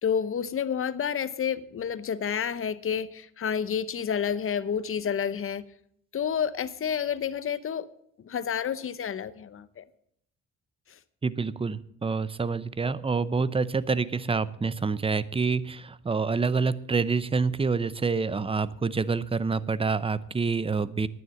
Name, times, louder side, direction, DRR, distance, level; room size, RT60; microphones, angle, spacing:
voice 1, 0.0-5.7 6.1-7.9 8.2-9.8, left 7 dB, 45° left, 15 dB, 0.9 m, -29 dB
voice 2, 11.2-21.1, right 4 dB, 20° right, 17 dB, 0.6 m, -27 dB
11.0 x 9.5 x 7.2 m, 0.70 s
cardioid pair, 90°, 30 cm